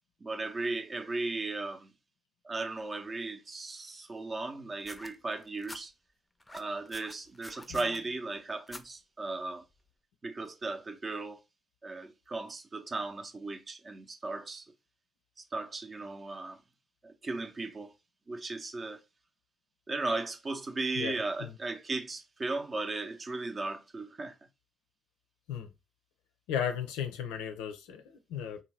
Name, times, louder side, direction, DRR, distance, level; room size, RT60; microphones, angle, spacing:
voice 1, 0.2-1.9 2.4-5.9 6.5-9.6 10.2-11.4 11.8-14.7 15.4-16.6 17.0-17.9 18.3-19.0 19.9-24.3, right 3 dB, 35° right, 0.6 m, -36 dB
sound 1, 4.8-5.8 6.4-8.0 8.7-8.9 9.8-9.9, left 1 dB, 15° left, 0.5 m, -47 dB
voice 2, 21.0-21.5 25.5-25.7 26.5-28.6, left 8 dB, 75° left, 0.5 m, -35 dB
2.8 x 2.3 x 3.2 m
hypercardioid pair, 45°, 0 cm